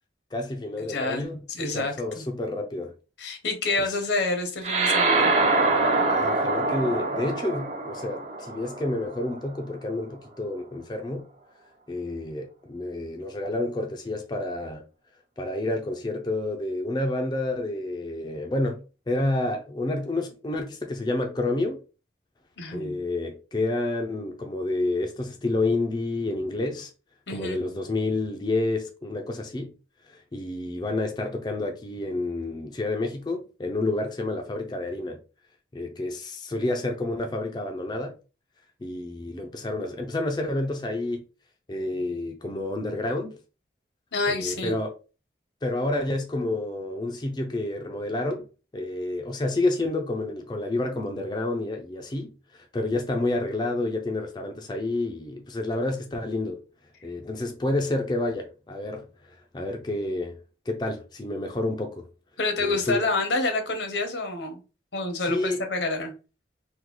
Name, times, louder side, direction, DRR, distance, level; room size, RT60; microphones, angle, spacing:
voice 1, 0.3-2.9 6.1-11.3 11.9-14.9 15.4-21.8 22.7-26.9 27.3-29.7 30.1-35.2 35.7-38.1 38.8-41.2 41.7-43.4 44.3-44.9 45.6-48.5 48.7-56.6 57.0-59.1 59.5-60.4 60.7-62.1 62.6-63.0 65.2-65.6, left 2 dB, 25° left, 0.4 m, -29 dB
voice 2, 0.9-1.9 3.2-5.3 22.6-23.0 27.3-27.6 44.1-44.8 62.4-64.6 64.9-66.1, left 2 dB, 85° left, 0.8 m, -28 dB
sound 1, 4.6-9.4, right 3 dB, 35° right, 0.6 m, -24 dB
3.7 x 2.2 x 3.0 m
head